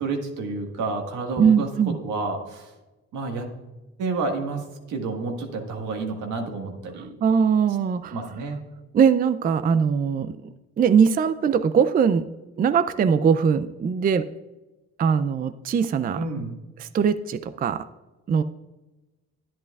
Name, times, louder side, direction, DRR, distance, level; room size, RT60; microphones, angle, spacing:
voice 1, 0.0-1.7 2.0-2.7 3.1-3.4 4.0-4.6 4.9-7.1 8.1-8.6 16.1-16.6, right 3 dB, 80° right, 3 dB, 1.7 m, -29 dB
voice 2, 1.4-2.0 7.2-8.2 8.9-12.3 12.6-14.3 15.0-16.2 16.8-17.9 18.3-18.4, right 6 dB, 30° right, 13 dB, 0.4 m, -21 dB
11.0 x 10.5 x 2.4 m, 1.1 s
cardioid pair, 90°, 30 cm